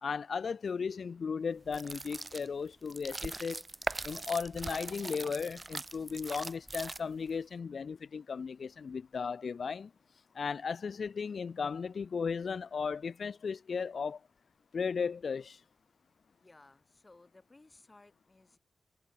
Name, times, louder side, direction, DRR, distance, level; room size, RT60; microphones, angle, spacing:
voice 1, 0.0-3.6 4.0-9.9 10.3-14.2 14.7-15.6, left 5 dB, 70° left, 0.5 m, -36 dB
sound 1, 1.7-7.3, right 3 dB, 35° right, 0.3 m, -41 dB
voice 2, 16.4-18.6, left 2 dB, 30° left, 6.1 m, -59 dB
wide cardioid pair, 80°, 0 cm